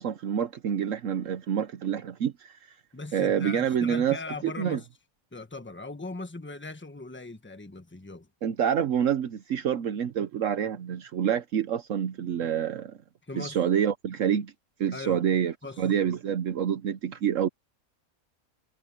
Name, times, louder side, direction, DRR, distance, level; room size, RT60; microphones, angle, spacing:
voice 1, 0.0-2.6 3.1-4.2 4.4-4.8 8.4-13.0 13.4-14.5 14.8-17.5, right 8 dB, 65° right, 1.1 m, -27 dB
voice 2, 2.9-4.9 5.3-8.3 13.3-13.6 14.9-15.3 15.6-15.8, left 3 dB, 10° left, 1.2 m, -39 dB
omnidirectional pair, 1.5 m